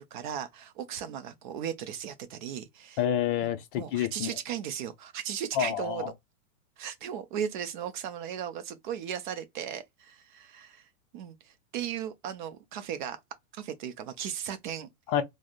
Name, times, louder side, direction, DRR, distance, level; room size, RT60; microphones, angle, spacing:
voice 1, 0.0-3.0 3.8-6.1 6.8-13.2 13.5-14.9, right 9 dB, 40° right, 0.4 m, -36 dB
voice 2, 3.0-4.3 5.5-6.1 15.1-15.2, left 10 dB, 40° left, 0.5 m, -28 dB
3.5 x 2.0 x 2.4 m
hypercardioid pair, 135°, 42 cm